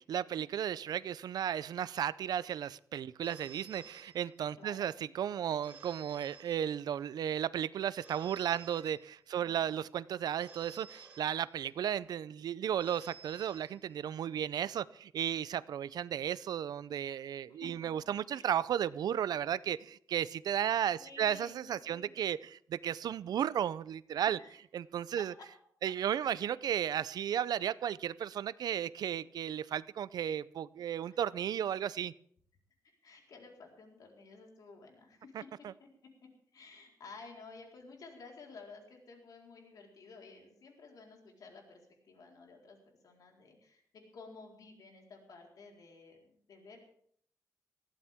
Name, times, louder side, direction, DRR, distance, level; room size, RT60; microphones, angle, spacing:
voice 1, 0.0-24.4 24.7-25.3 25.8-32.1 35.3-35.7, right 9 dB, 85° right, 18 dB, 0.5 m, -34 dB
Telephone, 3.2-4.7 5.6-7.1 8.0-9.5 10.4-11.9 12.8-14.3, right 5 dB, 25° right, 4.7 m, -55 dB
voice 2, 4.6-4.9 9.4-9.7 17.5-17.9 18.3-18.5 21.0-22.1 24.1-24.6 25.8-25.9 26.2-26.5 31.0-31.2 33.0-35.5 35.8-35.9 36.5-42.8 43.0-46.8, left 4 dB, 70° left, 0 dB, 4.2 m, -53 dB
20.5 x 15.0 x 3.6 m, 0.63 s
wide cardioid pair, 165°, 7 cm